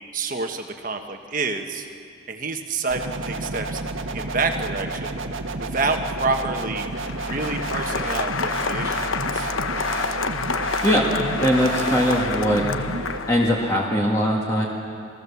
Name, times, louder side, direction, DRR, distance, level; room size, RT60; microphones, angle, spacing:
voice 1, 0.1-1.9 2.3-3.8 4.1-5.2 5.6-9.5, right 3 dB, 40° right, 5 dB, 1.3 m, -28 dB
sound 1, 2.9-13.2, right 2 dB, 80° right, 1.5 m, -31 dB
Applause, 6.8-13.7, left 5 dB, 85° left, 1.0 m, -28 dB
voice 2, 11.4-12.6 13.3-14.7, equal, 15° left, -3 dB, 1.9 m, -20 dB
28.5 x 18.5 x 7.2 m, 2.4 s
head